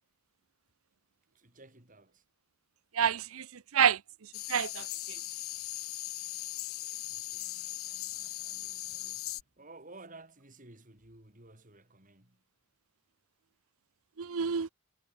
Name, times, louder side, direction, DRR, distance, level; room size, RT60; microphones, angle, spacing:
voice 1, 1.3-2.2 7.0-12.4, right 2 dB, 35° right, 4.3 m, -55 dB
voice 2, 2.9-4.0 4.5-5.2 14.2-14.7, right 8 dB, 75° right, 0.7 m, -29 dB
sound 1, 4.3-9.4, left 15 dB, 75° left, 2.0 m, -39 dB
head